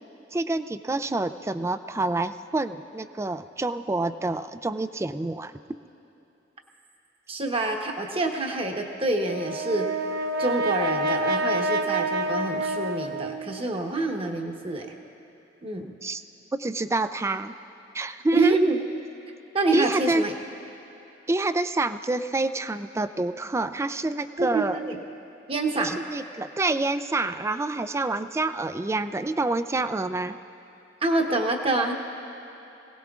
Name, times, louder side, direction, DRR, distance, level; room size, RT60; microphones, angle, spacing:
voice 1, 0.3-5.5 16.0-16.2 16.6-17.5 17.9-18.6 19.7-20.2 21.3-24.8 25.8-30.4, right 2 dB, 15° right, 11 dB, 0.3 m, -27 dB
voice 2, 7.3-9.9 10.4-14.9 15.6-15.9 18.3-18.8 19.5-20.3 24.4-25.0 25.5-26.0 31.0-31.9, right 2 dB, 30° right, 3 dB, 1.1 m, -26 dB
Brass instrument, 9.2-13.6, right 1 dB, 55° right, 0.8 m, -27 dB
25.0 x 17.5 x 2.4 m, 3.0 s
head